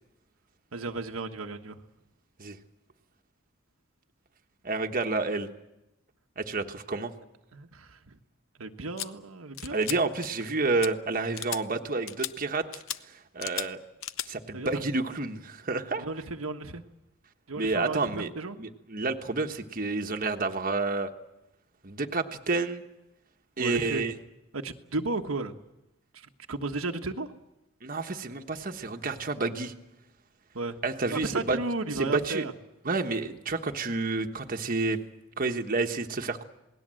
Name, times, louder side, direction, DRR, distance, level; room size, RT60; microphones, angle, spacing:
voice 1, 0.7-1.8 7.5-8.2 8.6-9.8 14.5-14.8 16.0-16.8 17.5-18.6 23.6-24.0 24.5-25.6 26.1-27.3 30.5-30.8 31.1-32.5, right 3 dB, 90° right, 5 dB, 1.4 m, -34 dB
voice 2, 4.6-5.5 6.4-7.1 9.7-12.6 13.3-13.8 14.3-16.0 17.6-18.3 18.6-21.1 21.8-22.8 23.6-24.1 27.8-29.7 30.8-31.6 31.9-32.4 32.8-35.0 35.4-36.4, right 3 dB, 40° right, 5 dB, 1.3 m, -29 dB
sound 1, 9.0-9.1 9.6-10.0 10.2-10.5 10.8-10.9 11.4-11.6 12.1-12.3 12.7-13.0 13.4-13.7 14.0-14.3, left 12 dB, 70° left, 0.8 m, -35 dB
28.0 x 19.0 x 7.7 m, 0.94 s
head